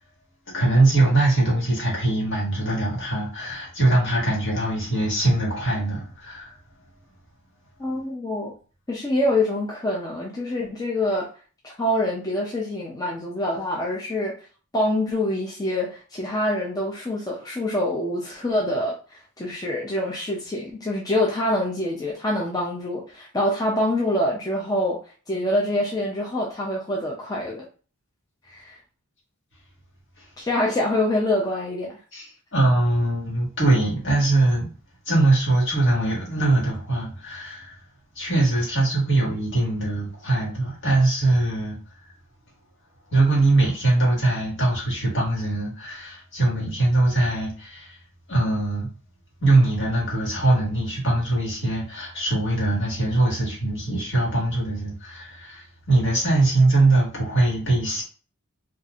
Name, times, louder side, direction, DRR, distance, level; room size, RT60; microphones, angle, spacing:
voice 1, 0.5-6.5 32.1-34.7 35.1-37.7 38.2-41.8 43.1-47.9 48.3-48.9 49.4-58.0, right 2 dB, 55° left, 1.6 m, -22 dB
voice 2, 7.8-8.5 8.9-11.3 11.6-14.4 14.7-25.0 25.3-27.7 28.5-28.8 30.4-32.0, left 1 dB, 15° left, 0.5 m, -25 dB
4.4 x 2.5 x 2.4 m
head